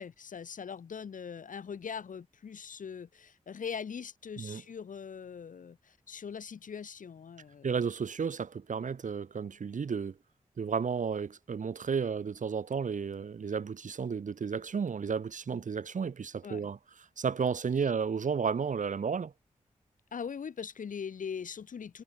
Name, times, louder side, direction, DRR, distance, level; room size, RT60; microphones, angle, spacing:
voice 1, 0.0-7.7 16.4-16.7 17.8-17.9 20.1-22.0, left 6 dB, 80° left, 4.8 m, -41 dB
voice 2, 7.6-10.1 10.6-16.8 17.2-19.3, right 6 dB, 70° right, 3.0 m, -32 dB
cardioid pair, 50°, 13 cm